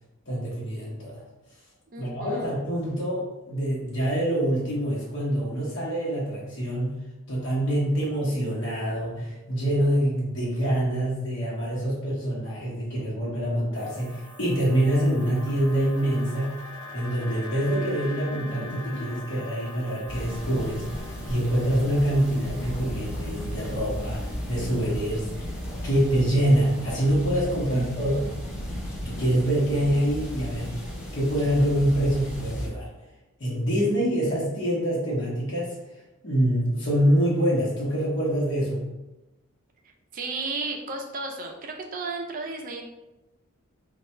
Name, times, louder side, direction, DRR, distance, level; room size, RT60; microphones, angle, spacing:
voice 1, 0.3-1.2 2.0-6.9 7.3-16.5 16.9-20.8 21.3-25.3 25.8-28.2 29.0-30.8 31.1-32.9 33.4-35.7 36.2-38.8, right 1 dB, 55° left, -5 dB, 1.0 m, -25 dB
voice 2, 1.9-2.6 27.7-28.3 40.1-42.8, right 3 dB, 40° right, 2 dB, 0.5 m, -34 dB
sound 1, 13.7-27.0, left 1 dB, 20° right, 0.9 m, -45 dB
sound 2, 14.7-20.0, left 3 dB, 85° left, 0.5 m, -42 dB
sound 3, 20.1-32.7, equal, 30° left, 1.0 m, -35 dB
3.3 x 2.3 x 4.2 m, 1.0 s
head